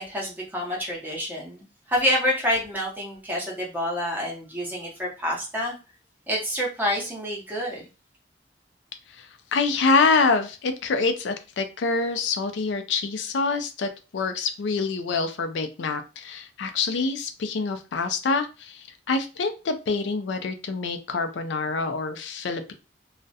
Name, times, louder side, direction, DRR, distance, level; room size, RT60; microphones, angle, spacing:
voice 1, 0.0-5.7 6.3-7.9, equal, 10° right, -3 dB, 0.8 m, -28 dB
voice 2, 9.1-22.7, left 4 dB, 85° left, 8 dB, 0.4 m, -26 dB
2.3 x 2.1 x 2.7 m, 0.31 s
head